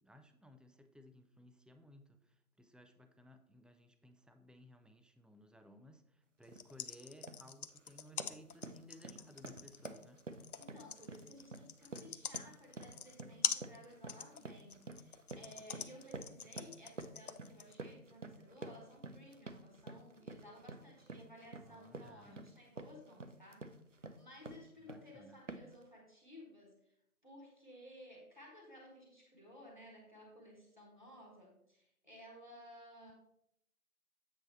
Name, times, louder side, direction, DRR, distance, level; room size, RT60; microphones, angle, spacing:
voice 1, 0.0-10.2 21.6-22.5 24.8-25.4, left 1 dB, ahead, 7 dB, 0.3 m, -59 dB
sound 1, 6.4-17.8, left 6 dB, 70° left, 0.6 m, -43 dB
sound 2, 6.5-6.7 7.1-7.5 7.8-25.1 25.5-25.8, right 3 dB, 55° right, 0.6 m, -50 dB
voice 2, 10.5-23.7 24.0-26.9 27.2-33.1, left 1 dB, 30° left, -1 dB, 1.1 m, -57 dB
8.0 x 4.2 x 4.4 m, 0.76 s
figure-of-eight pair, 170°, 45 cm